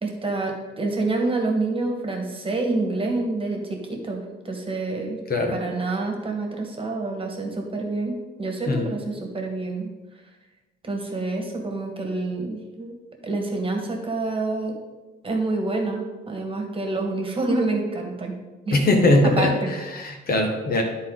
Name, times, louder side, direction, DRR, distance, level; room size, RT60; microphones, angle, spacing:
voice 1, 0.0-5.2 5.5-9.9 10.8-13.0 13.2-14.8 15.2-18.3 18.6-18.8 19.4-19.7, right 2 dB, 25° right, 1 dB, 1.7 m, -27 dB
voice 2, 18.7-20.8, left 2 dB, 50° left, 3 dB, 1.5 m, -21 dB
12.0 x 4.2 x 4.0 m, 1.2 s
cardioid pair, 90°, 20 cm